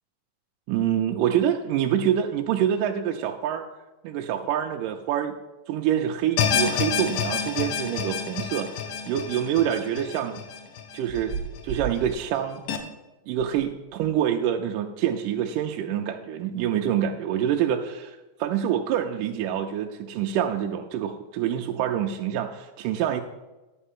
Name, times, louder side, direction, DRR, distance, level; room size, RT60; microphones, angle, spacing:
voice 1, 0.7-3.7 4.0-5.3 5.7-8.7 9.1-10.4 10.9-11.4 11.6-12.6 13.3-23.2, right 10 dB, 80° right, 2 dB, 2.1 m, -26 dB
sound 1, 6.4-11.6 12.0-12.1 12.7-12.8, left 7 dB, 85° left, 2.5 m, -28 dB
sound 2, 11.0-12.2 13.3-13.7 13.9-14.2, right 7 dB, 35° right, 1.5 m, -35 dB
11.0 x 4.6 x 7.2 m, 1.1 s
omnidirectional pair, 4.0 m